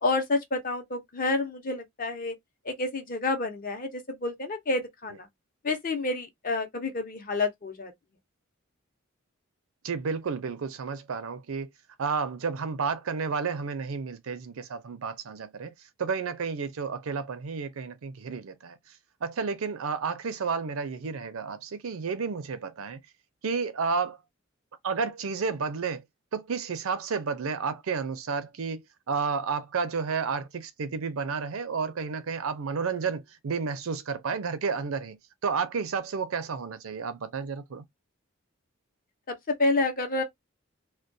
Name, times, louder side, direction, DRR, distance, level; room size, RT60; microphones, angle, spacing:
voice 1, 0.0-2.3 2.7-5.3 5.6-7.9 39.3-40.2, left 2 dB, 40° left, 0.6 m, -29 dB
voice 2, 9.8-11.7 12.0-15.7 16.0-18.8 19.2-23.0 23.4-24.2 24.8-26.0 26.3-37.8, right 5 dB, 85° right, 0.5 m, -31 dB
2.2 x 2.2 x 2.6 m
head